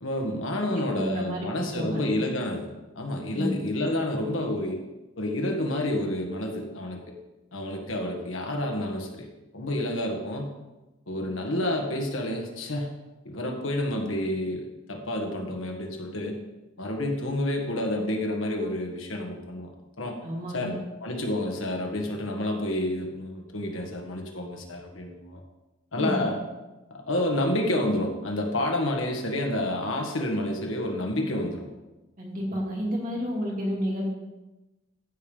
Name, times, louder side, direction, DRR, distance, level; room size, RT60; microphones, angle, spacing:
voice 1, 0.0-2.7 3.0-4.8 5.2-7.2 7.5-9.3 9.5-10.5 11.1-12.9 13.3-16.4 16.8-19.7 20.0-20.2 20.5-25.4 25.9-26.4 26.9-31.7, left 1 dB, 80° left, 1 dB, 1.8 m, -29 dB
voice 2, 0.6-2.0 3.3-3.5 20.2-20.8 26.0-26.2 32.2-34.1, equal, 40° right, -3 dB, 2.8 m, -31 dB
14.5 x 5.2 x 5.4 m, 1.0 s
head